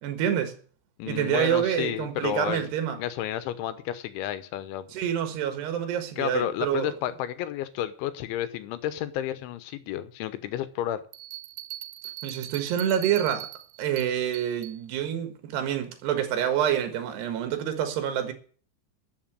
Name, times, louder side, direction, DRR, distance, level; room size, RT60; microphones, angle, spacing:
voice 1, 0.0-0.6 1.1-3.0 4.9-6.9 12.2-13.5 13.8-18.3, right 9 dB, 65° right, 3.4 m, -27 dB
voice 2, 1.0-2.7 3.0-4.9 6.2-11.0, left 12 dB, 85° left, 3.3 m, -31 dB
sound 1, 11.1-14.8, right 16 dB, 85° right, 3.3 m, -40 dB
13.0 x 6.9 x 8.9 m
omnidirectional pair, 5.4 m